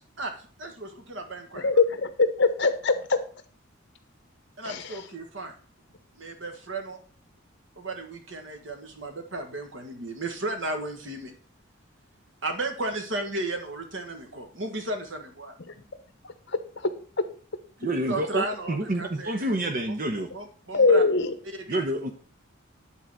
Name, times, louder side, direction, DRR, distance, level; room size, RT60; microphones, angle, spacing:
voice 1, 0.6-1.7 4.6-5.5 6.2-7.0 7.8-11.3 12.4-15.6 18.1-19.5 20.3-21.0 21.4-21.8, right 2 dB, 65° right, 5 dB, 1.7 m, -34 dB
voice 2, 1.6-3.2 4.6-5.0 16.2-16.3 20.7-21.3, left 4 dB, 60° left, 10 dB, 1.0 m, -22 dB
voice 3, 17.8-20.3 21.7-22.1, right 1 dB, 45° right, 5 dB, 0.9 m, -28 dB
10.0 x 4.1 x 6.2 m, 0.42 s
head